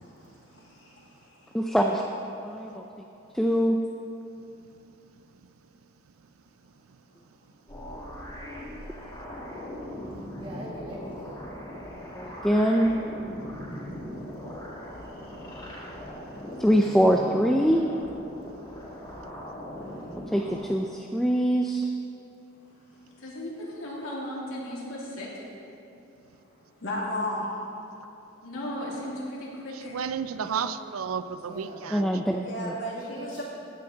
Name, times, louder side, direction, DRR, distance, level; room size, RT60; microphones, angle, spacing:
voice 1, 0.0-1.5 2.7-2.8 14.3-14.7 15.1-15.4 18.7-18.8 19.1-19.4 19.8-20.2 22.7-23.3 26.8-27.5 30.4-30.6 32.4-33.4, left 1 dB, 60° left, -4 dB, 2.0 m, -37 dB
voice 2, 1.5-2.0 2.4-2.8 3.3-3.8 12.1-12.9 16.6-17.8 20.3-21.9 31.9-32.7, equal, ahead, 1 dB, 0.4 m, -23 dB
sound 1, 7.7-20.7, equal, 20° left, 2.2 m, -39 dB
voice 3, 10.4-11.5 31.4-31.8 32.8-33.4, right 1 dB, 25° right, -6 dB, 1.6 m, -42 dB
voice 4, 23.2-25.4 28.4-30.0, left 1 dB, 85° left, -5 dB, 2.7 m, -36 dB
voice 5, 29.7-32.2, right 7 dB, 90° right, 13 dB, 0.5 m, -32 dB
15.5 x 9.7 x 3.9 m, 2.8 s
head